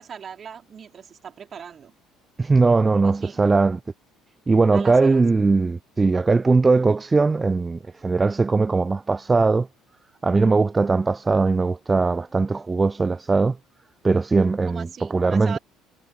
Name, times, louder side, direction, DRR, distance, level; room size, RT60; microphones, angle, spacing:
voice 1, 0.0-1.9 2.9-3.5 4.7-5.2 14.7-15.6, right 7 dB, 40° right, 4.1 m, -39 dB
voice 2, 2.4-3.8 4.5-9.7 10.2-13.6 14.0-15.6, right 3 dB, 25° right, 0.6 m, -20 dB
figure-of-eight pair, 55°, 0 cm